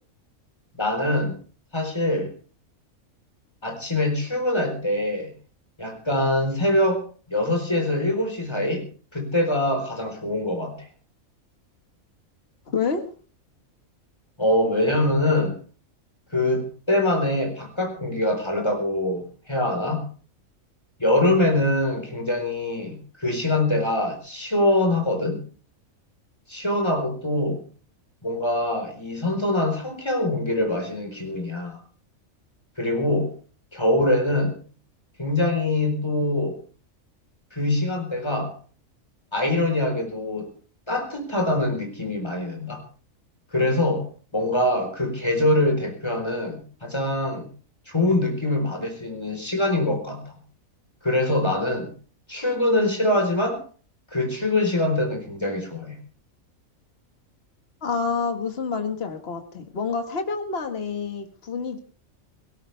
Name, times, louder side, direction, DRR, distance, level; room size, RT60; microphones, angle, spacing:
voice 1, 0.7-1.4 1.7-2.3 3.6-5.3 5.8-7.0 7.3-8.9 9.1-10.9 14.4-15.6 16.3-20.0 21.0-25.4 26.5-27.6 28.2-31.8 32.8-33.3 33.7-34.6 35.2-36.6 37.5-38.5 39.3-40.5 40.9-42.8 43.5-44.0 44.3-47.5 47.9-50.4 51.0-51.9 52.3-53.6 54.1-56.0, left 1 dB, 20° left, 3 dB, 4.2 m, -24 dB
voice 2, 12.7-13.0 57.8-61.8, left 5 dB, 45° left, 6 dB, 1.9 m, -28 dB
18.5 x 17.0 x 3.4 m, 0.39 s
omnidirectional pair, 1.5 m